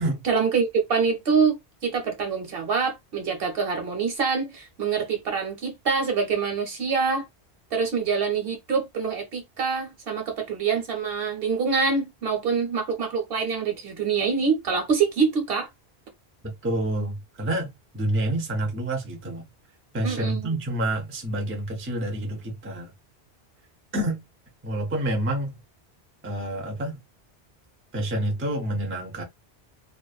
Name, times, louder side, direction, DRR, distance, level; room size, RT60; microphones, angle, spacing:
voice 1, 0.2-1.5 1.8-7.3 7.7-15.7 20.0-20.5, right 5 dB, 65° right, 1.0 m, -25 dB
voice 2, 16.4-19.4 19.9-22.9 23.9-24.2 24.6-25.6 26.2-27.0 27.9-29.2, right 1 dB, 20° right, 0.4 m, -28 dB
2.5 x 2.1 x 2.4 m
omnidirectional pair, 1.1 m